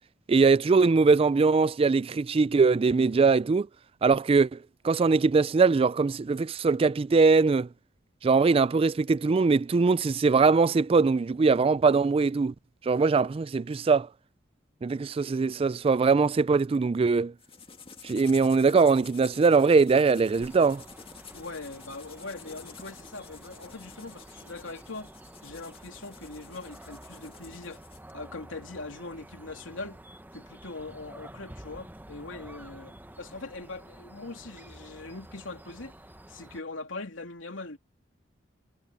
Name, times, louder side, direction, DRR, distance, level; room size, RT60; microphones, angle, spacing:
voice 1, 0.3-3.7 4.0-4.6 4.8-7.7 8.2-12.5 12.8-14.1 14.8-17.3 18.0-20.8, right 4 dB, 30° right, 0.3 m, -22 dB
sound 1, 17.4-28.1, left 5 dB, 30° left, 2.0 m, -50 dB
sound 2, 20.3-36.6, right 1 dB, 10° right, 0.9 m, -49 dB
voice 2, 21.3-25.1 25.4-27.8 28.1-30.0 30.3-35.9 36.3-37.8, left 3 dB, 80° left, 3.0 m, -41 dB
head